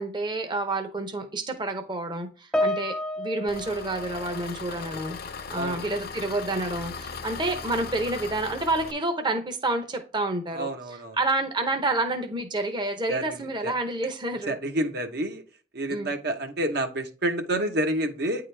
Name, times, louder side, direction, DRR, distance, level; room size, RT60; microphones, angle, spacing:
voice 1, 0.0-5.2 5.5-14.6 15.9-16.1, right 2 dB, 25° right, 5 dB, 0.7 m, -29 dB
Piano, 2.5-5.2 5.4-5.8 6.6-6.7, left 1 dB, 5° left, 0.4 m, -31 dB
Engine, 3.5-8.9, left 5 dB, 55° left, 0.6 m, -38 dB
voice 2, 10.5-11.2 13.1-13.2 13.6-13.7 14.5-15.4 15.7-18.5, right 1 dB, 65° right, 5 dB, 1.0 m, -28 dB
9.3 x 3.8 x 3.3 m, 0.37 s
head